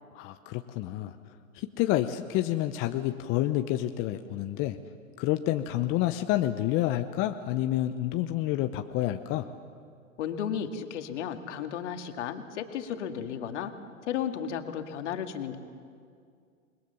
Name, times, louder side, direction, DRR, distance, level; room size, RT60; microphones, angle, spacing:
voice 1, 0.1-1.1 1.5-4.8 5.2-9.5, left 14 dB, 30° left, 8 dB, 0.9 m, -29 dB
voice 2, 10.2-13.7 14.1-15.6, left 8 dB, 60° left, 6 dB, 2.2 m, -34 dB
29.0 x 21.0 x 7.0 m, 2.2 s
hypercardioid pair, 110°, 40 cm